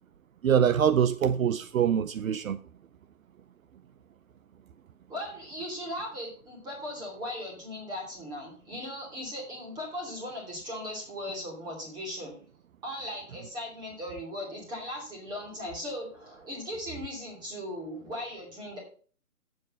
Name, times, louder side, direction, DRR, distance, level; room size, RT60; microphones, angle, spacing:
voice 1, 0.4-2.6, right 8 dB, 65° right, 0.6 m, -24 dB
voice 2, 5.1-12.4 12.8-18.8, left 1 dB, 10° right, 2.8 m, -38 dB
7.9 x 6.6 x 5.3 m
hypercardioid pair, 160°, 44 cm